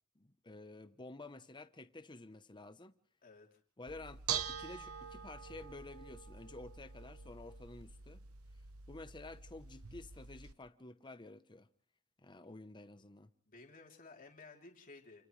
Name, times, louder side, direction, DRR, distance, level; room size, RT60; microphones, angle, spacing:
voice 1, 0.1-2.9 3.8-8.2 8.9-11.7 12.2-13.3, left 2 dB, 20° left, 0.9 m, -51 dB
voice 2, 3.2-3.6 13.5-15.3, left 3 dB, 40° left, 3.5 m, -56 dB
Bell / Dishes pots and pans, 3.9-10.5, right 8 dB, 80° right, 1.1 m, -45 dB
28.5 x 28.5 x 3.3 m
head